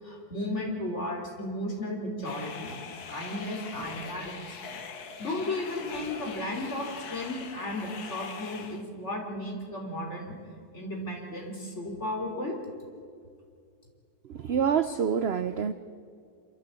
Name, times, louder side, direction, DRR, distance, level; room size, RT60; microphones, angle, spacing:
voice 1, 0.0-2.8 3.1-4.6 5.2-10.4 10.7-12.6, left 1 dB, 45° left, 0 dB, 3.9 m, -34 dB
sound 1, 2.2-8.8, left 6 dB, 75° left, 1.8 m, -42 dB
voice 2, 14.2-15.7, right 7 dB, 55° right, 12 dB, 0.7 m, -27 dB
27.0 x 13.5 x 8.2 m, 2.2 s
omnidirectional pair, 1.7 m